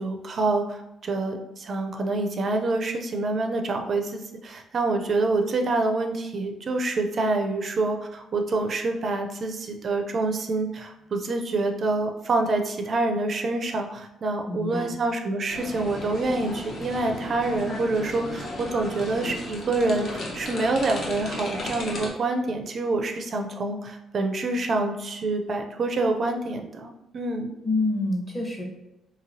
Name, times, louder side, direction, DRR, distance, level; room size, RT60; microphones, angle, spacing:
voice 1, 0.0-27.5, right 2 dB, 50° right, 4 dB, 0.4 m, -27 dB
voice 2, 14.5-14.9 27.6-28.6, left 2 dB, 25° left, -1 dB, 0.8 m, -27 dB
sound 1, 15.5-22.1, left 1 dB, 55° left, 0.7 m, -35 dB
2.9 x 2.6 x 2.7 m, 0.91 s
cardioid pair, 90°, 0 cm